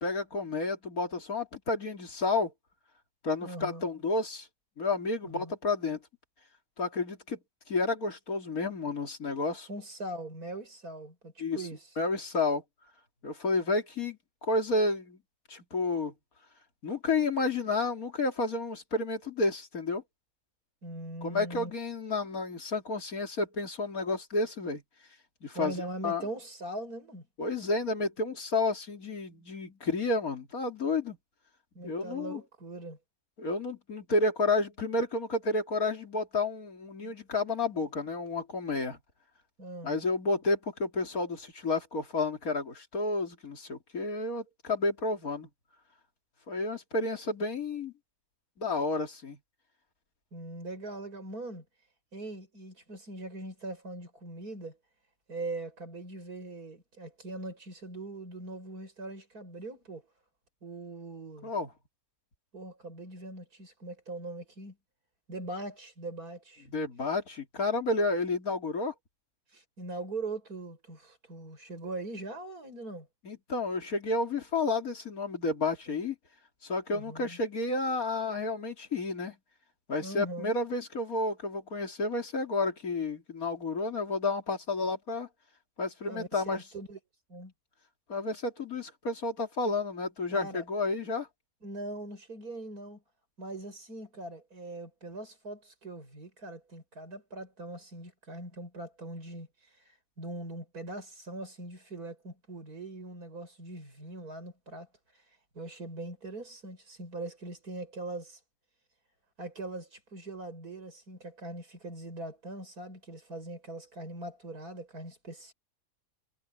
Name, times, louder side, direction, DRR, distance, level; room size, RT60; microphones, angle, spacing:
voice 1, 0.0-2.5 3.2-4.5 4.8-6.0 6.8-7.4 7.7-9.7 11.4-11.6 12.0-12.6 13.2-15.2 15.5-16.1 16.8-20.0 21.2-24.8 25.4-26.2 27.4-31.2 31.8-32.4 33.4-39.0 39.8-45.5 46.5-47.9 48.6-49.4 61.4-61.7 66.7-68.9 73.2-76.1 76.6-79.4 79.9-85.3 85.8-86.6 88.1-91.3, left 3 dB, 70° left, 3.3 m, -31 dB
voice 2, 3.4-3.9 5.2-5.5 9.7-11.8 20.8-21.7 25.5-27.3 31.7-33.0 39.6-40.0 50.3-51.6 52.1-54.8 55.3-60.0 60.6-61.5 62.5-64.8 65.3-66.7 69.5-73.1 76.9-77.4 80.0-80.5 86.1-87.0 87.3-87.5 90.3-90.6 91.6-93.0 93.4-99.5 100.2-104.9 105.5-108.4 109.4-115.5, right 2 dB, 90° right, 6.6 m, -41 dB
omnidirectional pair, 1.6 m